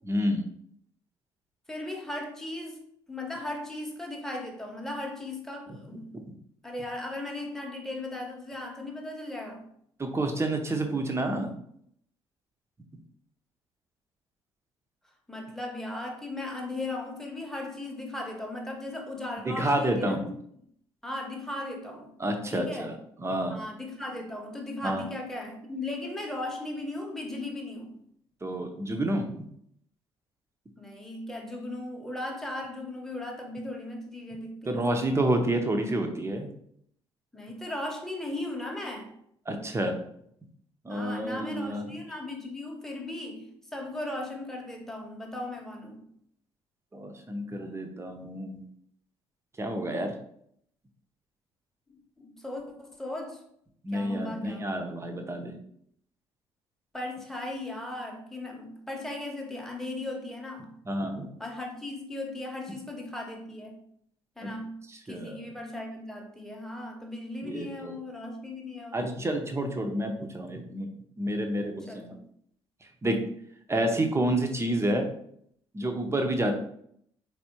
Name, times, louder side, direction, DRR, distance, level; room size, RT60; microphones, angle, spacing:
voice 1, 0.0-0.4 6.1-6.2 10.0-11.5 19.4-20.3 22.2-22.9 23.2-23.6 24.8-25.0 28.4-29.5 34.7-36.5 39.5-40.0 40.8-41.9 46.9-48.6 49.6-50.1 53.8-55.5 60.9-61.3 64.4-64.5 65.1-65.4 67.4-67.9 68.9-70.9 71.2-72.2 73.0-73.2 73.7-75.1 75.7-76.5, right 1 dB, 20° right, 0.8 m, -29 dB
voice 2, 1.7-2.8 3.1-6.1 6.6-9.6 15.3-20.4 21.0-22.1 22.5-22.9 23.5-27.9 30.8-34.9 37.3-39.1 40.9-46.0 51.9-53.4 53.9-54.7 56.9-60.7 61.4-63.8 64.4-69.1 71.9-72.1, left 2 dB, 5° left, 1.0 m, -37 dB
4.2 x 3.4 x 2.9 m
figure-of-eight pair, 45°, 14 cm